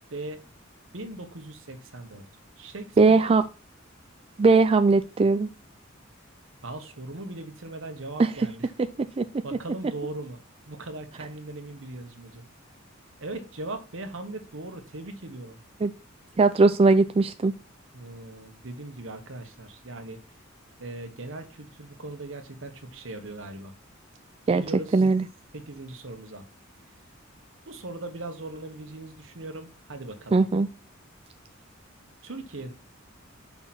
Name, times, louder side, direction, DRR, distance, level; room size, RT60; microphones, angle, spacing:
voice 1, 0.1-0.4 0.9-2.2 2.6-3.4 6.6-8.7 9.4-10.4 10.7-12.4 13.2-15.6 17.9-20.2 20.8-23.7 24.5-25.0 25.5-26.4 27.6-30.4 32.2-32.7, right 2 dB, 70° right, 1.2 m, -39 dB
voice 2, 3.0-3.4 4.4-5.5 8.2-8.3 9.2-9.3 15.8-15.9 16.4-17.5 24.5-24.6 24.9-25.2 30.3-30.7, right 3 dB, 30° right, 0.3 m, -19 dB
5.9 x 4.3 x 5.8 m
head